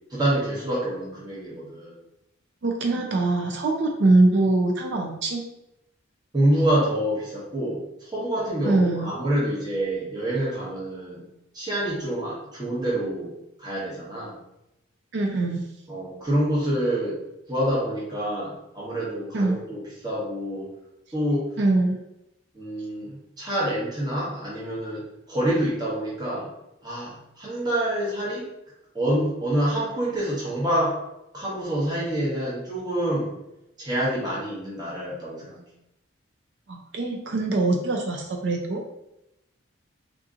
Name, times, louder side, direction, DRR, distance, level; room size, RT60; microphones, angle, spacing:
voice 1, 0.1-1.9 6.3-11.2 11.5-13.3 13.6-14.4 15.9-17.2 17.5-20.7 21.1-21.5 22.5-25.0 25.3-26.5 26.8-28.5 28.9-31.0 31.3-33.3 33.8-35.6, right 1 dB, 20° right, -7 dB, 1.0 m, -27 dB
voice 2, 2.6-5.4 8.6-9.1 15.1-15.6 19.3-19.6 21.6-22.0 36.7-38.8, right 2 dB, 55° right, 2 dB, 0.4 m, -23 dB
3.7 x 2.8 x 2.4 m, 0.87 s
head